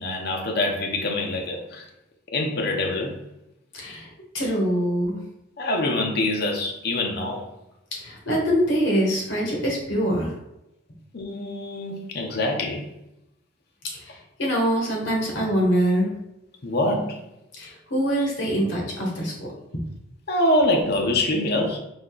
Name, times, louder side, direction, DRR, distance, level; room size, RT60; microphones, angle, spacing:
voice 1, 0.0-1.8 2.3-3.2 5.6-7.5 11.1-12.9 16.6-17.2 20.3-21.8, left 1 dB, 50° left, 1 dB, 0.7 m, -25 dB
voice 2, 3.7-4.1 4.3-5.2 8.0-10.3 14.0-16.1 17.6-19.5, equal, 70° left, -2 dB, 1.6 m, -24 dB
4.0 x 2.8 x 3.9 m, 0.87 s
head